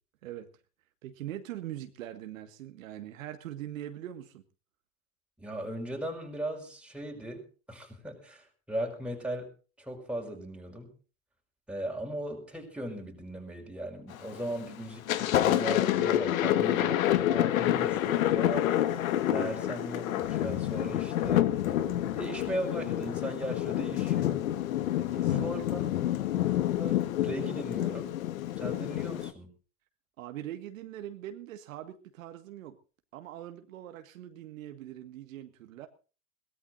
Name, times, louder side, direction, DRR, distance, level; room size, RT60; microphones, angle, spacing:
voice 1, 1.0-4.4 25.0-25.6 26.0-26.1 30.2-32.8 33.1-35.9, right 12 dB, 65° right, 7 dB, 1.8 m, -42 dB
voice 2, 5.4-9.5 9.8-10.9 11.7-17.0 17.3-18.7 19.3-21.5 22.1-24.4 25.3-25.8 26.3-26.5 26.8-28.2 28.6-29.5, right 1 dB, 5° right, 1 dB, 5.2 m, -38 dB
Thunder, 14.1-14.5 14.9-29.3, left 12 dB, 70° left, 1.7 m, -28 dB
22.0 x 18.0 x 2.6 m, 0.35 s
hypercardioid pair, 115°, 43 cm